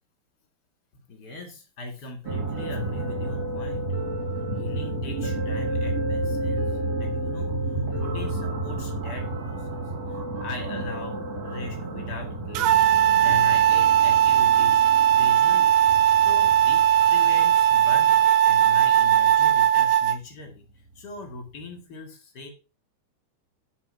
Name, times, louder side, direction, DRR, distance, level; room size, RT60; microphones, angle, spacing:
voice 1, 1.1-4.0 4.4-6.6 7.0-9.8 10.1-11.2 11.4-12.7 13.1-15.8 16.2-22.5, left 3 dB, 45° left, 3 dB, 1.3 m, -39 dB
sound 1, 2.2-19.5 21.2-21.3 21.6-21.7, right 2 dB, 45° right, 2.4 m, -31 dB
sound 2, 12.5-20.2, right 10 dB, 80° right, 2.4 m, -19 dB
9.2 x 4.9 x 5.6 m, 0.32 s
omnidirectional pair, 5.5 m